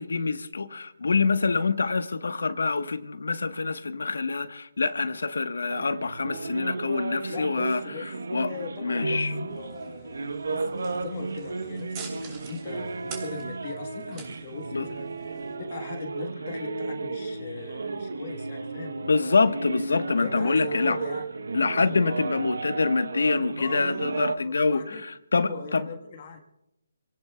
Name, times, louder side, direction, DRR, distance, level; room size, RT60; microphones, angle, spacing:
voice 1, 0.0-8.5 8.8-9.5 14.7-14.9 19.0-21.0 21.5-25.9, left 4 dB, 80° left, 1.1 m, -26 dB
sound 1, 5.7-24.4, right 3 dB, 75° right, 0.9 m, -34 dB
voice 2, 7.3-8.1 8.4-19.0 20.2-21.2 23.6-25.0 25.3-26.4, left 5 dB, 40° left, 1.4 m, -40 dB
sound 2, 9.5-15.6, right 5 dB, 20° right, 3.0 m, -46 dB
27.5 x 18.0 x 2.3 m
hypercardioid pair, 160°, 0 cm